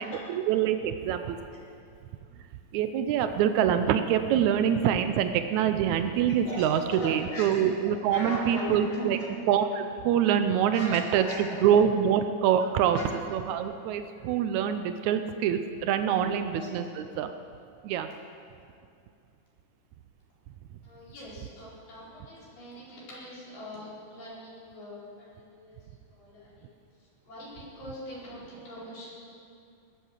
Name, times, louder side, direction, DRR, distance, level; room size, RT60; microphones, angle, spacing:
voice 1, 0.0-1.4 2.7-9.2 9.5-13.0 13.3-17.3 17.8-18.1, right 9 dB, 85° right, 8 dB, 1.6 m, -25 dB
voice 2, 6.4-9.3 10.7-11.6 12.8-13.1 16.2-16.3 16.6-16.7 20.8-25.8 26.1-26.7 27.0-29.1, left 1 dB, 70° left, -8 dB, 6.1 m, -40 dB
19.5 x 8.4 x 7.4 m, 2.4 s
omnidirectional pair, 4.1 m